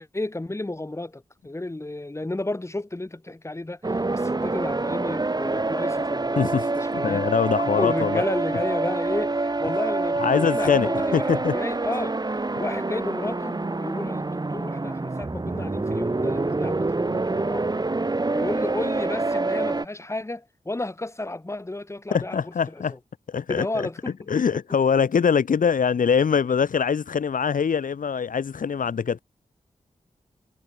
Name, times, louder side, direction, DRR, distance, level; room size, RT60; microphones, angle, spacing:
voice 1, 0.0-7.3 7.7-12.2 12.6-17.7 18.3-23.0 23.5-24.3, left 2 dB, 20° left, 3.3 m, -32 dB
sound 1, 3.8-19.9, right 2 dB, 30° right, 2.6 m, -26 dB
voice 2, 6.4-8.2 10.2-11.5 22.1-22.9 23.3-23.9 24.3-29.2, left 6 dB, 90° left, 2.0 m, -23 dB
wide cardioid pair, 85°, 13 cm